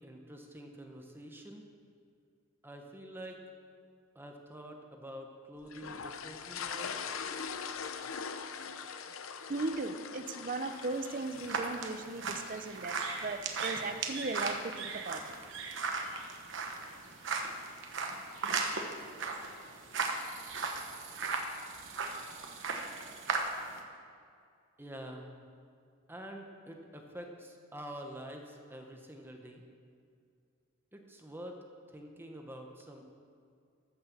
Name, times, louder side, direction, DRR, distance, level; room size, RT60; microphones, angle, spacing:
voice 1, 0.0-1.6 2.6-3.4 4.1-7.0 24.8-25.3 26.1-29.6 30.9-31.6 31.9-33.0, right 1 dB, 10° right, 2 dB, 1.0 m, -47 dB
sound 1, 5.7-13.0, left 6 dB, 75° left, 0.6 m, -42 dB
voice 2, 9.5-13.0 13.2-15.2, right 3 dB, 40° right, 9 dB, 0.7 m, -37 dB
sound 2, 10.6-23.8, right 4 dB, 60° right, 1.2 m, -37 dB
13.0 x 6.5 x 7.3 m, 2.3 s
head